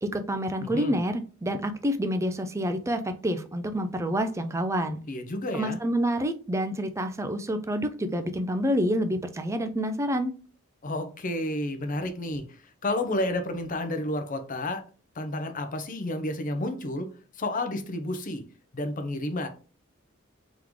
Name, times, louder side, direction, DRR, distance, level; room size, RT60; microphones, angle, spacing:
voice 1, 0.0-5.0 5.5-10.3, equal, 15° right, 8 dB, 0.4 m, -28 dB
voice 2, 0.6-1.0 5.1-5.8 10.8-12.4 12.8-14.8 15.2-17.1 17.4-18.4 18.7-19.5, left 1 dB, 40° left, 8 dB, 0.6 m, -30 dB
3.7 x 3.1 x 3.5 m, 0.37 s
head